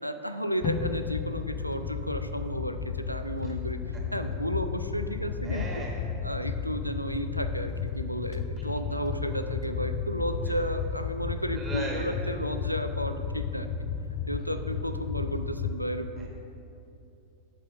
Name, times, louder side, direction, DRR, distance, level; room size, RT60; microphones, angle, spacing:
voice 1, 0.0-3.8 4.1-5.8 6.2-13.7 14.3-16.3, equal, 90° right, 8 dB, 0.4 m, -33 dB
sound 1, 0.6-15.8, left 6 dB, 40° left, 0.5 m, -33 dB
voice 2, 5.4-6.0 11.5-12.4 16.2-16.3, right 2 dB, 20° right, -2 dB, 1.2 m, -37 dB
6.6 x 5.6 x 6.1 m, 2.7 s
figure-of-eight pair, 90°, 0 cm